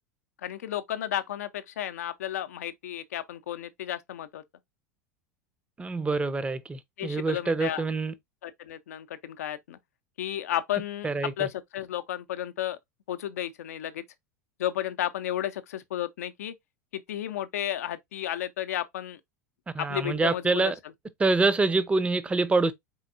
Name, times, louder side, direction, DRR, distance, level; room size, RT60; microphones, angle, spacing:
voice 1, 0.4-4.4 7.0-7.8 8.4-9.8 10.2-11.1 11.4-12.8 13.1-14.0 14.6-16.5 16.9-19.2 19.8-20.7, left 12 dB, 65° left, 0.6 m, -33 dB
voice 2, 5.8-8.1 11.0-11.5 19.7-20.7 21.2-22.7, right 3 dB, 15° right, 0.6 m, -26 dB
4.5 x 4.1 x 2.5 m
figure-of-eight pair, 80°, 9 cm